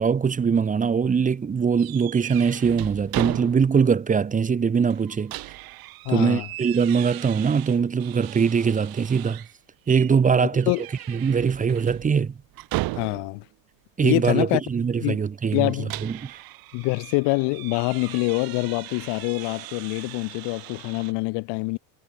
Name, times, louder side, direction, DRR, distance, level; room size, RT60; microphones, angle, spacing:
voice 1, 0.0-5.3 6.1-9.4 9.9-12.4 14.0-15.8 16.0-16.4, right 6 dB, 15° right, 2.7 m, -22 dB
sound 1, 1.8-3.9 4.3-4.4 4.9-9.5 9.9-10.2 10.5-13.5 15.5-21.1, right 19 dB, 50° right, 5.8 m, -37 dB
voice 2, 6.1-6.5 10.4-10.8 12.9-13.4 14.0-14.6 15.0-15.2 15.5-15.9 16.7-21.8, left 27 dB, 60° left, 3.8 m, -25 dB
cardioid pair, 180°, 45 cm